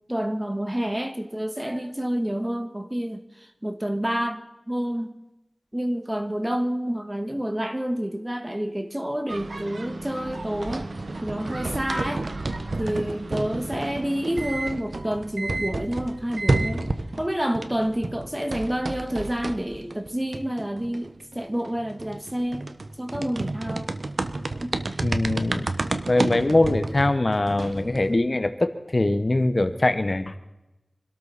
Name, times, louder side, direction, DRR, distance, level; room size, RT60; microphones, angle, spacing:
voice 1, 0.1-3.2 3.6-5.1 5.7-10.9 11.2-12.3 12.8-16.9 17.2-22.7 23.0-23.9 24.6-24.8, equal, 15° right, 1.7 m, -28 dB
sound 1, 9.3-17.3 17.5-28.1, right 2 dB, 75° right, 1.1 m, -31 dB
voice 2, 25.0-25.7 26.1-30.4, left 2 dB, 45° left, 1.2 m, -22 dB
25.5 x 13.0 x 4.2 m
wide cardioid pair, 60°, 0 cm